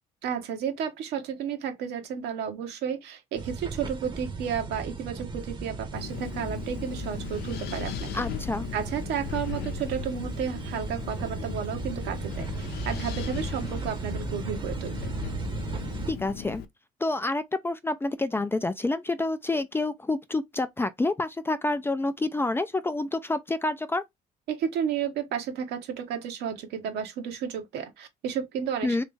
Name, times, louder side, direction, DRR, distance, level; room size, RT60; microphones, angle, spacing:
voice 1, 0.2-8.1 8.7-12.5 12.8-15.1 24.5-29.0, right 8 dB, 80° right, 1.1 m, -32 dB
sound 1, 3.4-16.1, right 4 dB, 30° right, 0.8 m, -36 dB
Wind, 5.9-16.7, left 8 dB, 75° left, 0.7 m, -38 dB
voice 2, 8.1-8.7 16.1-16.6 17.0-24.0 28.8-29.0, left 2 dB, 15° left, 0.4 m, -28 dB
3.2 x 3.0 x 3.3 m
cardioid pair, 110°, 17 cm